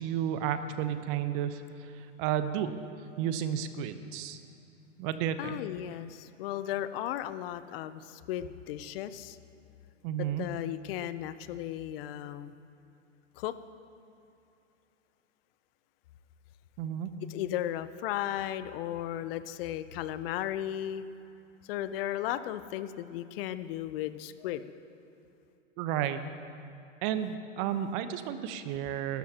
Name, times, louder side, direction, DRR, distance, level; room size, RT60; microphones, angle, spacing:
voice 1, 0.0-1.6 2.2-2.7 3.2-4.4 5.0-5.6 10.0-10.5 16.8-17.1 25.8-26.2 27.0-29.2, right 10 dB, 45° right, 10 dB, 1.0 m, -32 dB
voice 2, 5.4-9.4 10.4-12.5 13.4-13.5 17.3-21.0 21.7-24.7, left 12 dB, 50° left, 13 dB, 0.7 m, -35 dB
25.5 x 13.0 x 2.9 m, 2.8 s
hypercardioid pair, 120°, 38 cm